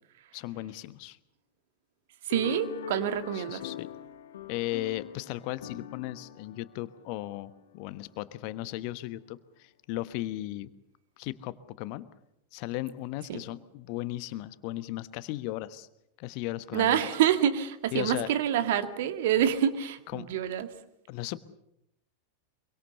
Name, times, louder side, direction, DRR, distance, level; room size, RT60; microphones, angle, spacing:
voice 1, 0.3-1.2 3.3-3.9 4.5-10.7 11.2-12.1 12.5-15.9 16.2-17.1 17.9-18.3 20.1-20.3 21.1-21.4, left 16 dB, 45° left, 15 dB, 1.2 m, -36 dB
sound 1, 2.3-7.9, left 10 dB, 60° left, 1.5 m, -43 dB
voice 2, 2.3-3.6 13.3-13.4 16.7-20.7, right 10 dB, 55° right, 10 dB, 2.0 m, -27 dB
25.5 x 23.5 x 6.9 m, 0.80 s
figure-of-eight pair, 90°, 0 cm